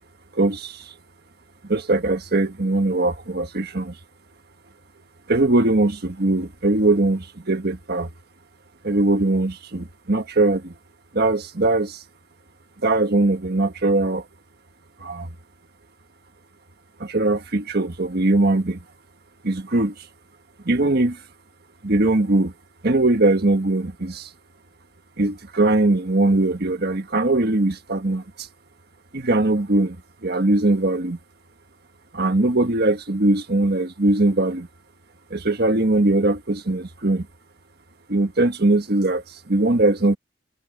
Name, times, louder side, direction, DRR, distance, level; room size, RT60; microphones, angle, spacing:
voice 1, 0.3-0.9 1.6-3.9 5.3-8.1 8.8-10.7 11.1-12.0 12.8-14.2 15.0-15.3 17.0-18.8 19.4-20.1 20.6-21.2 21.8-22.5 22.8-24.3 25.2-28.5 29.1-30.0 30.2-31.2 32.1-34.7 35.3-37.3 38.1-40.2, right 2 dB, 55° right, 1.5 m, -21 dB
head